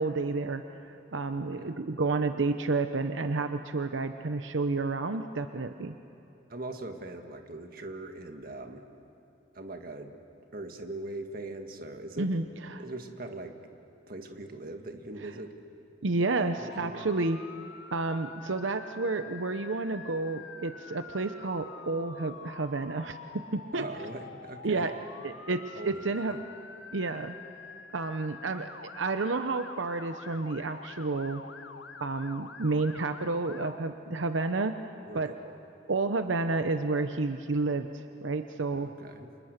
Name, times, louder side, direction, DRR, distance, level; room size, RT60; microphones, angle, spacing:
voice 1, 0.0-6.0 12.2-12.4 12.7-12.8 16.0-17.4 17.9-23.2 23.5-23.8 24.6-24.9 25.2-26.4 26.9-27.3 27.9-31.4 32.0-35.3 35.9-38.9, right 3 dB, 85° right, 8 dB, 0.8 m, -30 dB
voice 2, 6.5-8.8 9.5-10.1 10.5-12.3 12.8-13.6 14.1-15.6 16.6-17.1 23.7-24.9 25.8-26.0 35.1-35.4 38.7-39.3, right 2 dB, 50° right, 5 dB, 1.8 m, -41 dB
Motor vehicle (road) / Siren, 16.4-33.8, left 5 dB, 80° left, 1.0 m, -47 dB
30.0 x 26.5 x 6.7 m, 2.8 s
head